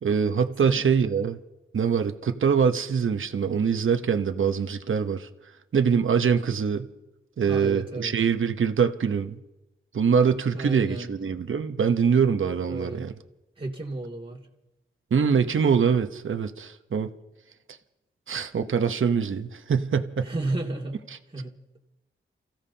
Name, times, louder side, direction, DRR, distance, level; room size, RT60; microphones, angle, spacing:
voice 1, 0.0-1.4 1.7-5.3 5.7-6.9 7.4-9.4 9.9-13.1 15.1-17.1 18.3-20.3, right 6 dB, 70° right, 7 dB, 0.9 m, -24 dB
voice 2, 7.5-8.1 10.5-11.1 12.7-13.1 13.6-14.4 20.2-21.0 21.3-21.6, right 2 dB, 25° right, -1 dB, 2.6 m, -32 dB
29.5 x 15.5 x 2.8 m, 0.99 s
cardioid pair, 40°, 21 cm